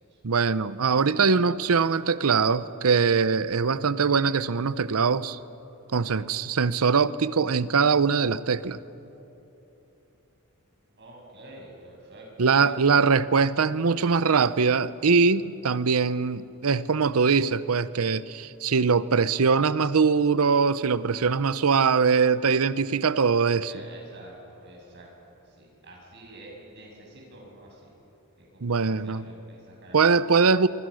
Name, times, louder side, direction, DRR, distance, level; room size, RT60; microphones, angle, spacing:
voice 1, 0.2-5.4 5.9-8.8 12.4-23.7 28.6-29.2 29.9-30.7, right 5 dB, 80° right, 16 dB, 0.7 m, -22 dB
voice 2, 11.0-12.8 23.6-27.9 28.4-30.0, right 1 dB, 50° right, -1 dB, 7.0 m, -48 dB
25.5 x 24.5 x 6.4 m, 3.0 s
head